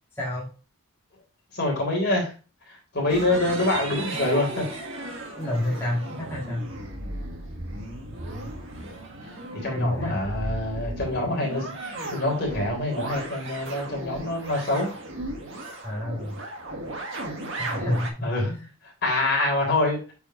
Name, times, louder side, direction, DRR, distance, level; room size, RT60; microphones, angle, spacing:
voice 1, 0.2-0.5 5.4-6.7 9.7-10.2 15.8-16.3 17.6-18.1 18.4-18.7, left 1 dB, 10° left, -6 dB, 2.0 m, -28 dB
voice 2, 1.5-2.3 2.9-4.7 9.5-11.7 12.1-14.9 18.2-18.5 19.0-20.0, left 2 dB, 45° left, -1 dB, 3.6 m, -25 dB
sound 1, 3.1-18.1, right 1 dB, 55° right, 1.8 m, -35 dB
8.7 x 4.9 x 3.0 m, 0.33 s
head